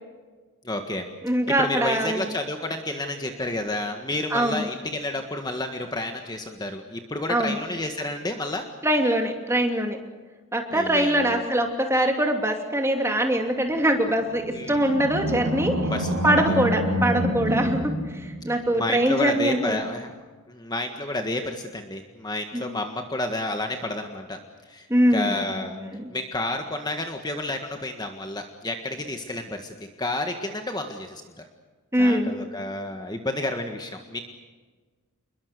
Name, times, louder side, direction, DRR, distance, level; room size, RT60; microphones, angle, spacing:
voice 1, 0.6-1.1 1.6-8.7 10.7-11.4 14.5-14.9 15.8-16.6 17.5-17.7 18.5-20.1 20.5-24.4 24.7-25.8 26.1-31.4 32.0-34.2, left 2 dB, 20° left, 5 dB, 1.7 m, -30 dB
voice 2, 1.2-2.3 4.3-4.7 7.3-7.6 8.8-10.0 10.5-15.8 16.2-17.9 18.2-19.8 22.5-22.6 24.9-26.1 31.9-32.4, right 1 dB, 10° right, 3 dB, 2.7 m, -23 dB
Animal, 14.2-18.8, equal, 60° right, 6.7 m, -27 dB
28.0 x 22.0 x 6.8 m, 1.4 s
head